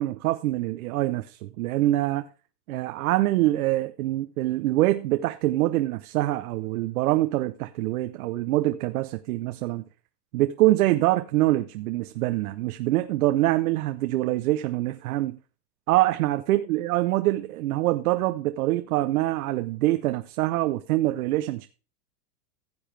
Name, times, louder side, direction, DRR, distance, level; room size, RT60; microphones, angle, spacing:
voice 1, 0.0-2.3 2.7-9.8 10.3-15.4 15.9-21.7, right 16 dB, 60° right, 0.8 m, -25 dB
15.0 x 7.1 x 3.3 m
supercardioid pair, 150°, 48 cm